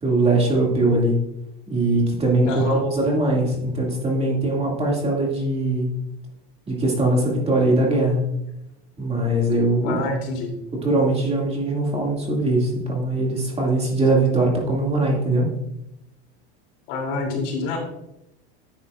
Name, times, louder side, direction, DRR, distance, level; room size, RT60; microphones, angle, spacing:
voice 1, 0.0-1.1 1.7-5.9 6.7-8.2 9.0-10.0 10.8-15.5, right 2 dB, 20° right, -1 dB, 2.2 m, -21 dB
voice 2, 2.4-2.8 9.8-10.5 16.9-17.8, left 3 dB, 65° left, 0 dB, 3.0 m, -27 dB
10.5 x 7.8 x 2.4 m, 0.84 s
supercardioid pair, 125°, 34 cm